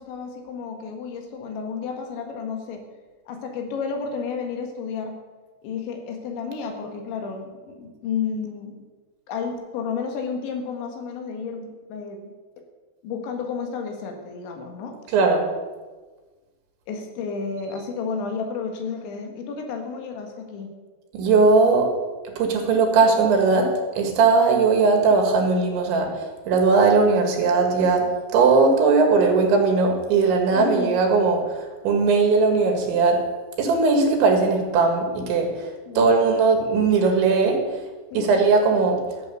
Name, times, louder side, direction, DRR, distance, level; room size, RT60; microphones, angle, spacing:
voice 1, 0.0-2.8 3.3-5.2 5.6-8.7 9.3-12.3 13.0-15.0 16.9-20.7 30.5-31.0 35.9-36.1 38.1-38.4, left 5 dB, 85° left, 4 dB, 3.9 m, -31 dB
voice 2, 15.1-15.5 21.1-21.9 22.4-26.1 26.5-31.6 31.8-33.3 33.6-35.7 36.0-37.6 38.2-39.0, right 4 dB, 90° right, 3 dB, 4.2 m, -19 dB
14.0 x 7.9 x 6.8 m, 1.3 s
omnidirectional pair, 5.2 m